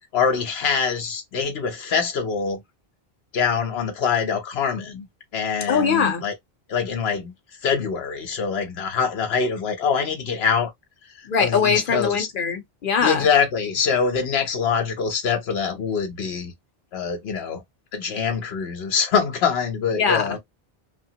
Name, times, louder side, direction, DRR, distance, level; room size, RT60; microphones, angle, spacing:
voice 1, 0.1-2.6 3.3-5.1 5.3-6.3 6.7-7.3 7.6-10.7 11.2-12.3 13.0-16.5 16.9-17.6 17.9-20.4, left 6 dB, 85° left, 1.0 m, -24 dB
voice 2, 5.7-6.2 11.3-13.3 20.0-20.3, left 6 dB, 60° left, 0.9 m, -22 dB
2.8 x 2.3 x 2.8 m
omnidirectional pair, 1.0 m